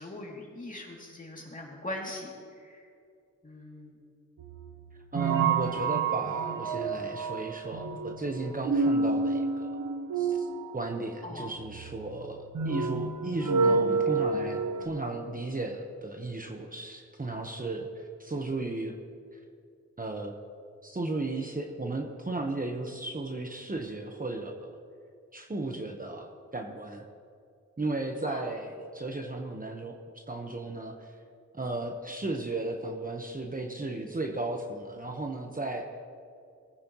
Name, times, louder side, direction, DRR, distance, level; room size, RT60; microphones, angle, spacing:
voice 1, 0.0-2.9 3.4-4.0 11.2-11.5 28.2-28.4, left 1 dB, 25° left, -2 dB, 2.7 m, -41 dB
sound 1, 4.4-14.9, right 4 dB, 80° right, 0.9 m, -29 dB
voice 2, 5.1-9.7 10.2-10.5 10.7-18.9 19.3-19.4 20.0-20.3 20.8-24.8 25.3-27.0 27.8-31.1 31.5-35.9, right 2 dB, 30° right, 3 dB, 1.1 m, -35 dB
19.5 x 9.5 x 3.1 m, 2.4 s
cardioid pair, 65°, 30 cm